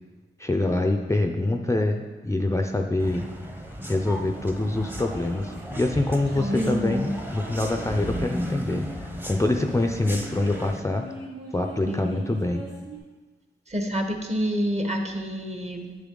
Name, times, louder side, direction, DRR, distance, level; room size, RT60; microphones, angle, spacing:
voice 1, 0.4-3.3 3.9-11.2 11.5-12.6, left 2 dB, 15° left, 4 dB, 0.5 m, -25 dB
sound 1, 3.0-10.8, equal, 10° right, 0.9 m, -35 dB
sound 2, 4.7-9.0 9.6-13.0, right 2 dB, 65° right, 2.3 m, -41 dB
voice 2, 6.3-7.1 11.8-12.1 13.7-16.0, equal, 30° right, 4 dB, 1.2 m, -27 dB
7.7 x 7.1 x 3.8 m, 1.3 s
cardioid pair, 60°, 21 cm